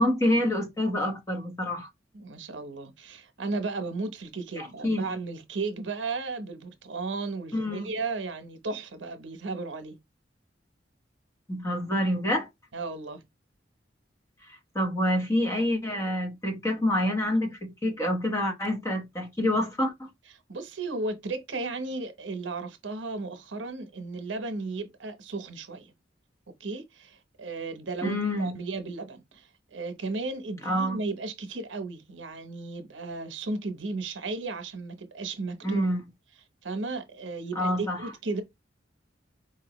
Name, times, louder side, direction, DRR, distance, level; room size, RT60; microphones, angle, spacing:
voice 1, 0.0-1.9 4.6-5.1 7.5-7.9 11.5-12.5 14.7-20.1 28.0-28.6 30.6-31.0 35.6-36.0 37.5-38.0, left 1 dB, 15° left, 1.0 m, -27 dB
voice 2, 2.1-10.0 12.7-13.2 20.5-25.9 26.6-35.8 36.6-38.4, right 3 dB, 85° right, 0.9 m, -34 dB
4.5 x 2.8 x 3.0 m
head